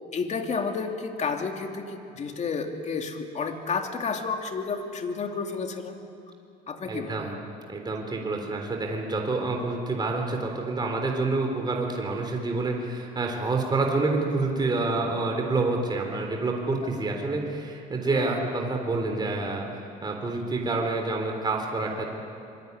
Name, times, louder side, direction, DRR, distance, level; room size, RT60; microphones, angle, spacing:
voice 1, 0.1-6.0 6.7-7.3 16.9-17.0 18.1-18.3, left 5 dB, 40° left, 4 dB, 2.7 m, -31 dB
voice 2, 6.9-7.3 7.7-22.0, right 3 dB, 25° right, 1 dB, 3.7 m, -28 dB
25.5 x 23.0 x 9.8 m, 2.7 s
cardioid pair, 110°, 17 cm